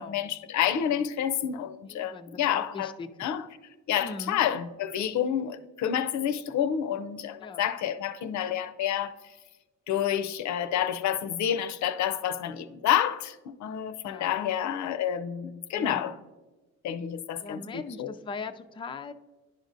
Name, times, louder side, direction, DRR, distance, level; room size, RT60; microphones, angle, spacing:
voice 1, 0.0-2.9 3.2-3.4 3.9-9.2 9.9-16.1 16.8-18.1, left 10 dB, 70° left, 0.5 m, -29 dB
voice 2, 1.9-3.1 4.0-4.4 7.4-7.7 14.0-14.6 15.7-16.1 17.4-19.1, left 4 dB, 15° left, 0.4 m, -40 dB
10.5 x 5.0 x 2.6 m
cardioid pair, 90°, 30 cm